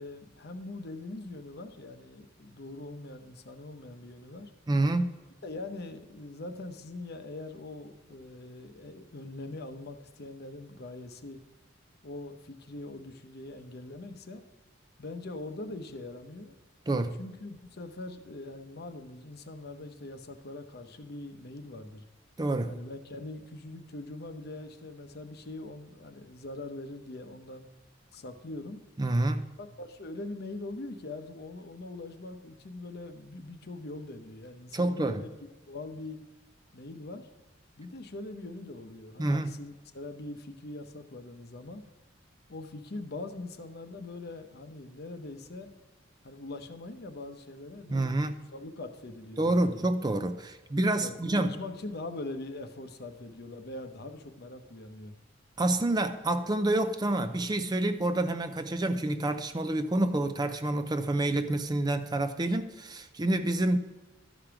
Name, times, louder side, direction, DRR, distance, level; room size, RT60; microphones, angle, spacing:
voice 1, 0.0-4.5 5.4-11.4 12.0-14.4 15.0-16.5 17.2-22.0 22.7-27.7 28.1-28.8 29.6-35.3 35.7-36.2 36.7-37.3 37.8-41.8 42.5-45.7 46.2-49.8 51.0-55.1, left 2 dB, 55° left, 0.8 m, -42 dB
voice 2, 4.7-5.1 16.9-17.2 22.4-22.8 29.0-29.5 34.7-35.2 39.2-39.5 47.9-48.4 49.4-51.5 55.6-63.8, right 2 dB, 20° right, 0.5 m, -28 dB
13.0 x 5.1 x 5.9 m
head